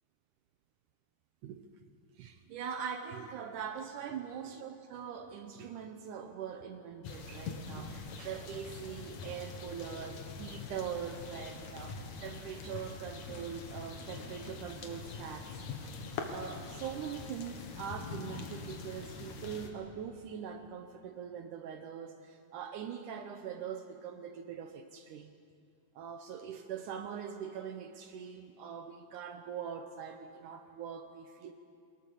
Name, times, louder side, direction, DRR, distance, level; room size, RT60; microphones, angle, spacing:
voice 1, 2.2-15.9 16.3-25.3 26.0-31.5, right 7 dB, 75° right, 7 dB, 1.9 m, -42 dB
sound 1, 7.0-19.7, left 4 dB, 55° left, 2.5 m, -44 dB
23.0 x 20.0 x 6.9 m, 2.4 s
omnidirectional pair, 4.4 m